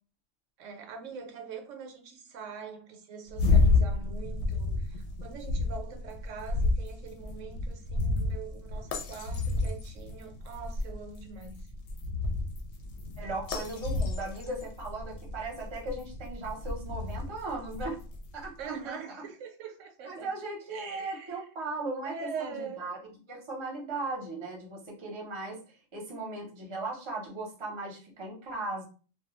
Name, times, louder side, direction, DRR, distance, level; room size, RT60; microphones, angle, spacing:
voice 1, 0.6-11.7 18.6-20.4 20.7-21.5 22.1-22.8, right 6 dB, 80° right, 4 dB, 0.9 m, -43 dB
sound 1, 3.3-18.5, left 3 dB, 70° left, 0.8 m, -31 dB
voice 2, 13.2-18.0 18.3-19.0 20.0-23.0 23.3-25.6 25.9-28.8, right 2 dB, 30° right, -1 dB, 0.6 m, -37 dB
2.2 x 2.2 x 2.9 m, 0.37 s
omnidirectional pair, 1.3 m